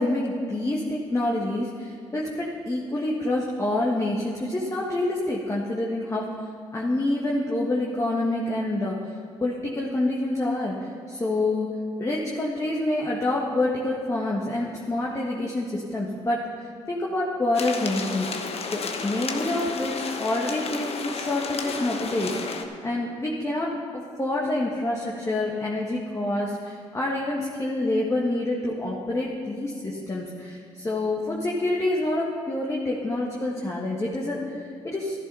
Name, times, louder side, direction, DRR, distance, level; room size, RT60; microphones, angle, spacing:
voice 1, 0.0-6.3 6.7-9.1 9.4-35.2, left 2 dB, 25° left, -3 dB, 1.7 m, -27 dB
sound 1, 17.5-22.6, left 4 dB, 55° left, 1.1 m, -32 dB
11.0 x 11.0 x 5.6 m, 2.3 s
supercardioid pair, 60°, 12 cm